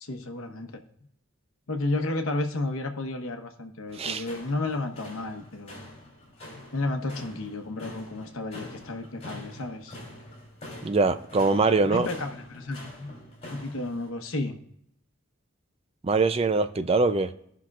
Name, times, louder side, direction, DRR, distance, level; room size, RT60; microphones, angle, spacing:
voice 1, 0.0-0.7 1.7-5.8 6.7-10.0 11.9-13.1 13.5-14.6, left 2 dB, 70° left, 6 dB, 1.0 m, -32 dB
sound 1, 3.9-14.1, left 1 dB, 30° left, 3.0 m, -45 dB
voice 2, 3.9-4.2 10.8-12.1 16.0-17.3, right 3 dB, 25° right, 10 dB, 0.4 m, -23 dB
16.0 x 5.8 x 2.4 m, 0.74 s
head